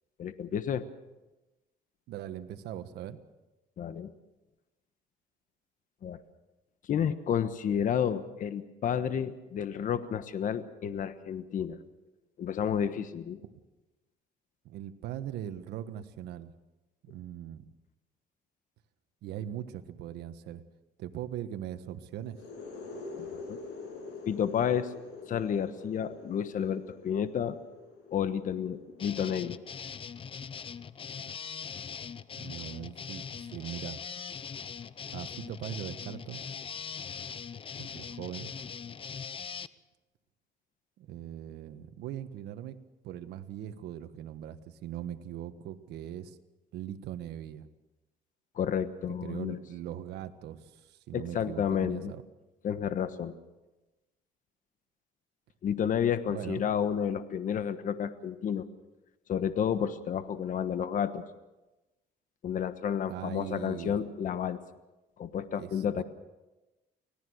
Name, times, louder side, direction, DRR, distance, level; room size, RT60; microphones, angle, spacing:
voice 1, 0.2-0.8 3.8-4.1 6.0-6.2 6.9-11.8 12.4-13.4 23.2-23.6 24.3-24.9 25.3-27.6 28.1-29.6 48.5-49.6 51.1-52.1 52.6-53.4 55.6-58.7 59.3-61.2 62.4-64.6 65.2-66.0, left 8 dB, 50° left, 11 dB, 1.3 m, -31 dB
voice 2, 2.1-3.2 14.6-16.5 17.0-17.7 19.2-20.6 21.0-22.4 32.4-34.0 35.1-36.4 37.8-38.5 41.0-42.8 43.0-46.4 46.7-47.7 49.1-52.2 56.3-56.6 63.1-64.0 65.6-66.0, right 11 dB, 80° right, 10 dB, 1.5 m, -40 dB
sound 1, 22.2-29.8, left 3 dB, 85° left, 7.3 m, -45 dB
sound 2, 29.0-39.7, left 6 dB, 30° left, 0.7 m, -41 dB
24.5 x 18.0 x 6.5 m, 1.1 s
cardioid pair, 110°, 17 cm